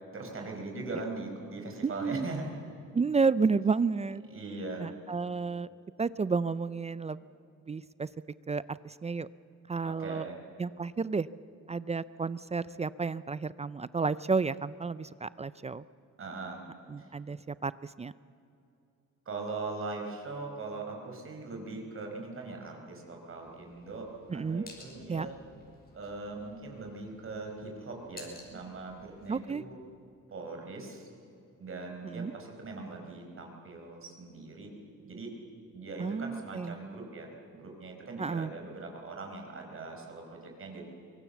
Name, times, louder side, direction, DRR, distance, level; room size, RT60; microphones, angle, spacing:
voice 1, 0.1-2.5 4.3-4.9 9.8-10.4 16.2-16.6 17.0-17.1 19.2-25.4 25.9-29.8 30.3-31.1 31.6-34.7 35.0-35.3 35.7-40.8, right 3 dB, 45° right, 2 dB, 4.9 m, -40 dB
voice 2, 1.8-2.3 2.9-4.2 4.8-5.7 6.0-7.2 7.6-8.1 8.5-9.3 9.7-10.2 10.6-11.3 11.7-15.8 16.9-18.1 24.3-24.6 25.1-25.3 29.3-29.6 32.0-32.3 36.0-36.8 38.2-38.5, right 4 dB, 20° right, 17 dB, 0.5 m, -31 dB
sound 1, 23.4-29.4, left 2 dB, 30° left, 5.8 m, -55 dB
24.0 x 19.0 x 7.1 m, 2.6 s
cardioid pair, 90°, 30 cm